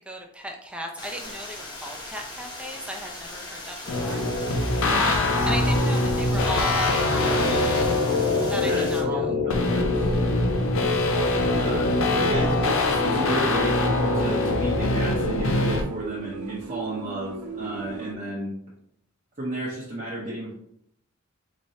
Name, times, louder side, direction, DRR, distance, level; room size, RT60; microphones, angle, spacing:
voice 1, 0.1-3.8 4.0-4.2 5.0-7.8 8.5-9.3, equal, 5° right, 1 dB, 0.5 m, -36 dB
sound 1, 1.0-9.0, left 2 dB, 20° left, 0.9 m, -39 dB
sound 2, 3.9-15.8, left 2 dB, 60° left, 0.6 m, -23 dB
voice 2, 8.6-10.1 11.5-18.5 19.4-20.5, right 1 dB, 35° right, -6 dB, 0.9 m, -33 dB
sound 3, 12.9-18.2, right 6 dB, 75° right, 0.4 m, -37 dB
4.3 x 3.0 x 2.8 m, 0.73 s
head